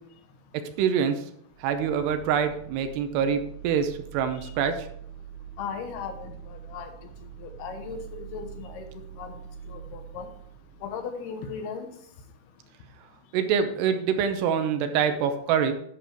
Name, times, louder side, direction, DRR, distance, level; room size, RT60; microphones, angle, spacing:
voice 1, 0.8-1.2 1.6-4.9 13.3-15.7, right 7 dB, 85° right, 8 dB, 2.9 m, -25 dB
sound 1, 1.5-11.1, right 9 dB, 60° right, 3.3 m, -44 dB
voice 2, 5.6-6.9 7.4-8.9 9.2-9.3 9.7-10.3 10.8-11.9 15.0-15.2, left 6 dB, 75° left, 5 dB, 3.0 m, -37 dB
11.0 x 6.9 x 4.4 m, 0.68 s
omnidirectional pair, 4.7 m